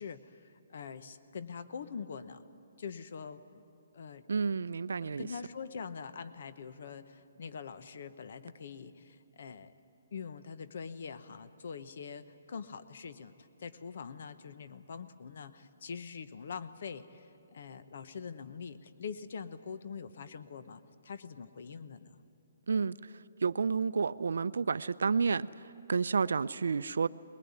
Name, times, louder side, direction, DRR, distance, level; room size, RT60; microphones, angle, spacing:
voice 1, 0.0-2.4 2.8-3.6 3.9-4.2 5.0-9.7 10.1-22.2, left 6 dB, 50° left, 12 dB, 1.0 m, -44 dB
voice 2, 4.3-5.3 22.7-23.0 23.4-25.5 25.9-27.1, right 5 dB, 80° right, 15 dB, 0.6 m, -30 dB
21.5 x 21.5 x 9.8 m, 2.8 s
hypercardioid pair, 175°, 0 cm